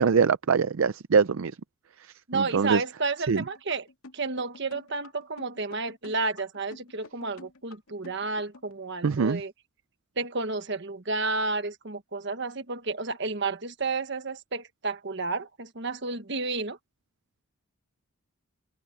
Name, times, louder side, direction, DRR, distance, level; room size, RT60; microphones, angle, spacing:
voice 1, 0.0-1.5 2.3-2.8 3.3-3.4 9.0-9.4, right 5 dB, 70° right, 0.5 m, -23 dB
voice 2, 2.3-3.9 4.1-9.5 10.2-16.8, right 3 dB, 55° right, 1.4 m, -31 dB
sound 1, 3.4-8.7, left 2 dB, 85° left, 2.5 m, -48 dB
head